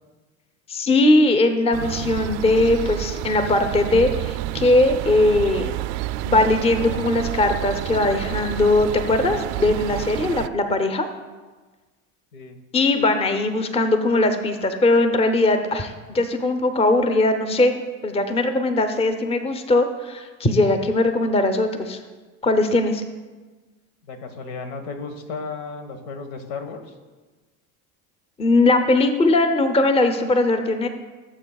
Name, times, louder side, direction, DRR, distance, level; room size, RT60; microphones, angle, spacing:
voice 1, 0.7-5.7 6.2-11.1 12.7-17.7 18.0-22.0 22.4-23.0 28.4-30.9, left 2 dB, 15° left, 8 dB, 0.7 m, -20 dB
sound 1, 1.7-10.5, right 15 dB, 55° right, 0.5 m, -29 dB
voice 2, 24.1-26.9, left 4 dB, 75° left, 6 dB, 1.5 m, -34 dB
17.5 x 7.6 x 2.3 m, 1.3 s
supercardioid pair, 105°, 43 cm